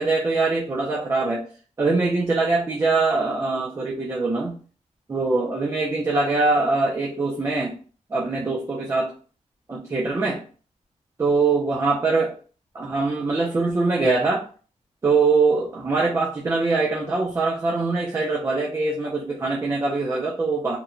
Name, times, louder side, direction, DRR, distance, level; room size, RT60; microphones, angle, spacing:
voice 1, 0.0-1.4 1.8-4.6 5.1-7.7 8.1-9.1 9.7-10.4 11.2-12.3 12.7-14.4 15.0-20.8, right 3 dB, 25° right, -3 dB, 0.4 m, -23 dB
2.9 x 2.1 x 2.4 m, 0.40 s
wide cardioid pair, 135°, 13 cm